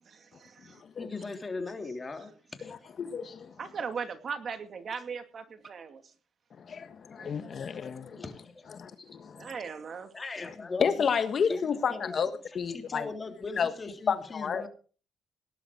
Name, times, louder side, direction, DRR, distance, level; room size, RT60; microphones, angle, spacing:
voice 1, 0.1-0.8 3.6-6.1 7.2-7.6 8.1-8.3 9.4-10.1, right 6 dB, 50° right, 8 dB, 2.4 m, -39 dB
voice 2, 1.0-2.3 2.6-2.7 8.2-8.7 9.0-9.1 10.1-10.9 11.5-12.2 12.7-14.7, left 3 dB, 30° left, 6 dB, 3.3 m, -39 dB
voice 3, 2.7-3.5 6.6-8.2 8.7-9.5 10.8-13.1 13.6-13.7 14.1-14.7, left 6 dB, 50° left, 11 dB, 1.4 m, -31 dB
18.5 x 11.0 x 4.7 m, 0.38 s
cardioid pair, 90°, 0 cm